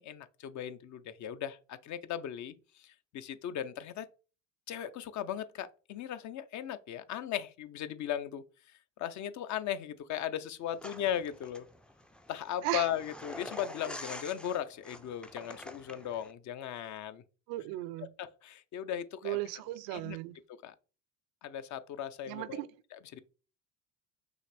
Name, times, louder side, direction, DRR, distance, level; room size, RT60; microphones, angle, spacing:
voice 1, 0.0-4.1 4.7-8.4 9.0-11.7 12.3-17.2 18.2-19.4 19.9-20.2 20.6-20.7 21.4-22.6 22.9-23.2, left 10 dB, 45° left, 0.6 m, -37 dB
sound 1, 10.8-16.3, left 1 dB, 5° left, 0.4 m, -47 dB
voice 2, 17.5-18.1 19.2-20.4 22.3-22.7, right 16 dB, 65° right, 0.6 m, -36 dB
6.2 x 2.6 x 3.3 m
hypercardioid pair, 70°, 39 cm